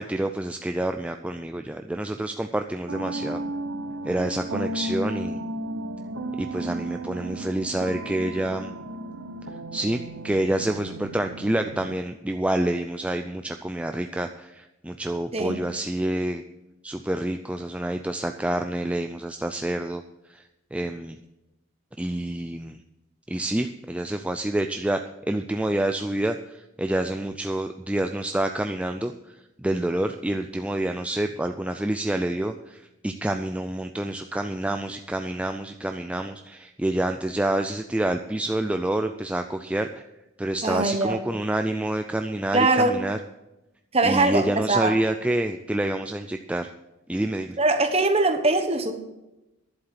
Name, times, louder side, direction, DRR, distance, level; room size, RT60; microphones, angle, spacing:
voice 1, 0.0-3.4 4.1-5.4 6.4-8.7 9.7-16.4 16.8-20.0 20.3-20.4 20.7-21.2 22.0-22.8 23.3-25.0 25.3-40.0 40.4-43.2 44.0-46.7 47.1-47.6, right 1 dB, 5° right, 6 dB, 0.3 m, -28 dB
sound 1, 2.9-11.9, right 1 dB, 65° right, 0.7 m, -34 dB
voice 2, 40.6-41.2 42.5-43.0 43.9-45.0 47.6-49.0, right 2 dB, 30° right, 7 dB, 1.1 m, -22 dB
11.0 x 7.7 x 7.3 m, 0.97 s
head